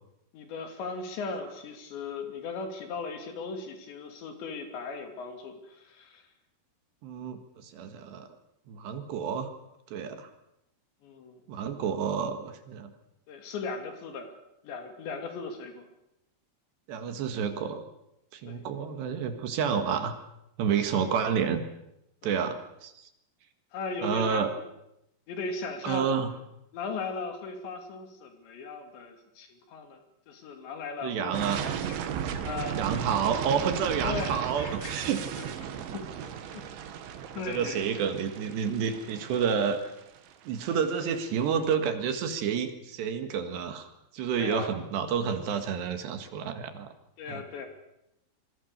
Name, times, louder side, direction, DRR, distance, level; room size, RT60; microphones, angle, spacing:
voice 1, 0.3-6.3 11.0-11.4 13.3-15.9 18.5-18.6 20.7-21.0 23.7-24.6 25.3-26.1 26.7-30.0 30.3-32.1 32.4-32.8 34.0-35.1 35.4-36.6 37.4-37.8 44.4-44.7 47.2-47.7, left 4 dB, 75° left, 5 dB, 4.9 m, -38 dB
voice 2, 7.0-8.3 8.7-9.5 9.9-10.3 11.5-12.9 16.9-17.9 18.3-20.2 20.6-21.6 22.2-22.9 24.0-24.5 25.8-26.3 31.0-31.7 32.8-35.2 37.5-39.8 40.5-43.9 44.1-46.9 47.3-47.4, right 7 dB, 70° right, 7 dB, 3.9 m, -29 dB
sound 1, 31.3-41.2, right 8 dB, 90° right, 4.0 m, -35 dB
26.5 x 22.5 x 6.8 m, 0.84 s
omnidirectional pair, 5.2 m